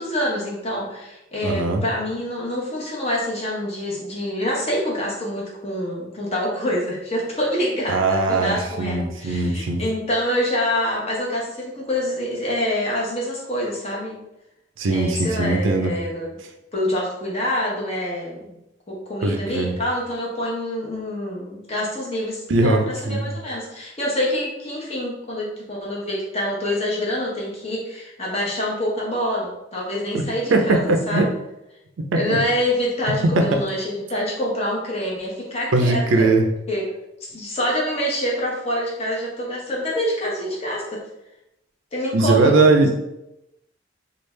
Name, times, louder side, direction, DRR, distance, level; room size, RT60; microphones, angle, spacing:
voice 1, 0.0-14.2 14.9-16.3 16.7-18.4 18.9-31.2 32.1-36.3 36.7-36.9 37.2-41.0 41.9-42.6, equal, 35° left, -4 dB, 0.9 m, -26 dB
voice 2, 1.4-1.8 7.9-9.8 14.8-15.9 19.2-19.7 22.5-23.3 30.1-30.2 30.5-31.3 32.1-32.4 33.4-33.5 35.7-36.5 42.1-42.9, right 2 dB, 85° right, 4 dB, 0.5 m, -20 dB
3.2 x 2.4 x 3.2 m, 0.88 s
head